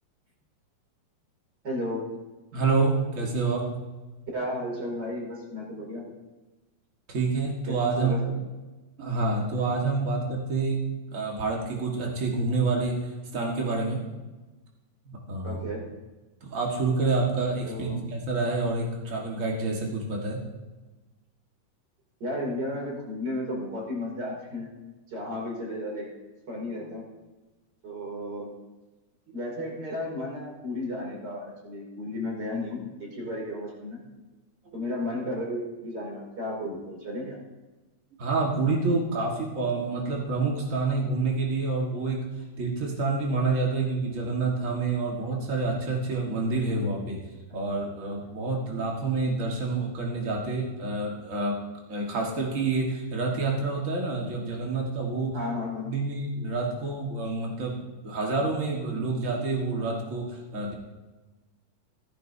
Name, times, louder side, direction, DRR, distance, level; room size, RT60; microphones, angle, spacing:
voice 1, 1.6-2.0 4.3-6.0 7.7-8.3 15.4-15.8 17.6-18.0 22.2-24.7 25.1-26.1 26.5-27.0 27.8-28.5 29.3-34.0 34.7-37.4 47.8-48.3 55.3-55.9, left 1 dB, 30° right, -2 dB, 3.1 m, -33 dB
voice 2, 2.5-3.6 7.1-8.2 9.0-10.8 11.1-12.9 13.3-14.0 15.0-15.6 16.4-20.4 38.2-42.2 42.6-47.2 47.5-51.6 51.9-55.3 55.8-60.7, right 3 dB, 85° right, -1 dB, 0.7 m, -28 dB
15.5 x 15.0 x 2.7 m, 1.2 s
omnidirectional pair, 4.3 m